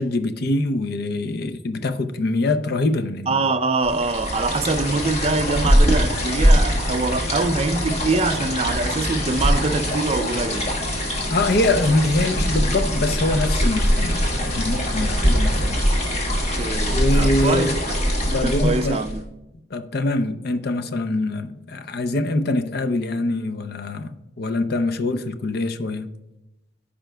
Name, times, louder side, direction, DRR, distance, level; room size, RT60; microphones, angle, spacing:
voice 1, 0.0-3.4 11.3-15.8 16.9-17.8 18.2-19.0 19.7-26.1, left 2 dB, 60° left, 0.6 m, -24 dB
voice 2, 3.3-10.7 15.0-15.1 16.6-18.0 18.3-19.2, right 3 dB, 35° right, 0.4 m, -24 dB
sound 1, 3.8-19.2, equal, 35° left, 1.5 m, -22 dB
13.5 x 5.1 x 2.2 m
head